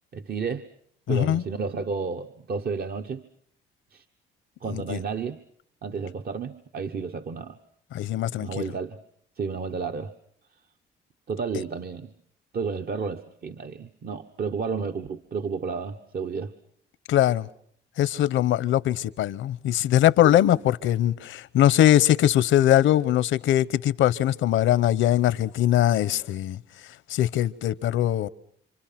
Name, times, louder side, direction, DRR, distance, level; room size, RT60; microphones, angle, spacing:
voice 1, 0.1-0.7 1.1-3.2 3.9-4.0 4.6-5.4 5.8-7.6 8.4-9.0 9.4-10.1 11.3-12.1 12.5-16.5 20.2-20.4, right 5 dB, 50° right, 1.3 m, -31 dB
voice 2, 1.1-1.4 4.7-5.0 7.9-8.6 17.1-17.5 18.0-26.6 27.1-28.3, left 12 dB, 80° left, 1.0 m, -21 dB
28.5 x 26.0 x 6.0 m
cardioid pair, 90°, 20 cm